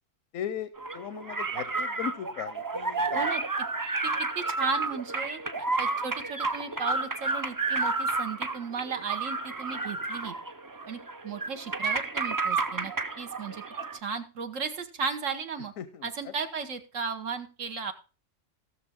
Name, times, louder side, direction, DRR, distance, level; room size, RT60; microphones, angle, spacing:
voice 1, 0.3-3.2 5.4-5.6 15.8-16.3, left 9 dB, 85° left, 13 dB, 1.1 m, -38 dB
sound 1, 0.8-14.0, right 3 dB, 30° right, 0.4 m, -31 dB
voice 2, 4.0-10.3 10.9-13.6 13.9-15.7 16.0-17.9, right 5 dB, 75° right, 7 dB, 1.5 m, -35 dB
17.0 x 6.6 x 3.5 m, 0.34 s
omnidirectional pair, 1.3 m